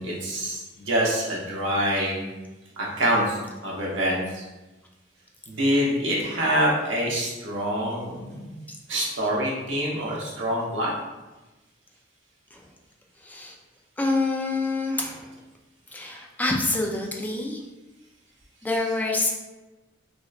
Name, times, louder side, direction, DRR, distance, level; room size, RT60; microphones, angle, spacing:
voice 1, 0.0-2.2 2.8-4.4 5.5-8.6 8.9-10.9 18.7-19.0, equal, 85° right, -4 dB, 0.9 m, -26 dB
voice 2, 13.2-13.6 14.0-15.3 15.9-17.6 18.6-19.3, left 2 dB, 10° left, 0 dB, 0.3 m, -26 dB
3.0 x 2.9 x 2.4 m, 1.1 s
head